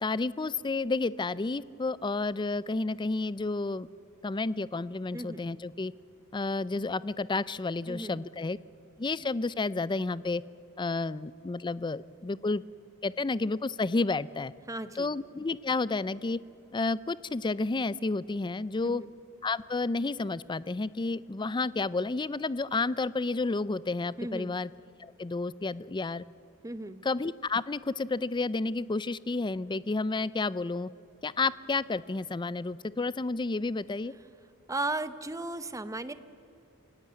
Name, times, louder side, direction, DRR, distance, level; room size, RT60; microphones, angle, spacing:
voice 1, 0.0-3.9 4.2-5.9 6.3-8.6 9.0-10.4 10.8-12.6 13.0-14.5 15.0-16.4 16.7-19.0 19.4-24.7 25.0-26.2 27.0-30.9 31.2-34.1, left 3 dB, 20° left, 19 dB, 0.4 m, -31 dB
voice 2, 5.1-5.4 7.9-8.3 14.7-15.2 18.8-19.1 24.2-24.6 26.6-27.0 34.7-36.1, right 2 dB, 15° right, 12 dB, 0.9 m, -36 dB
27.0 x 16.5 x 9.5 m, 2.9 s
head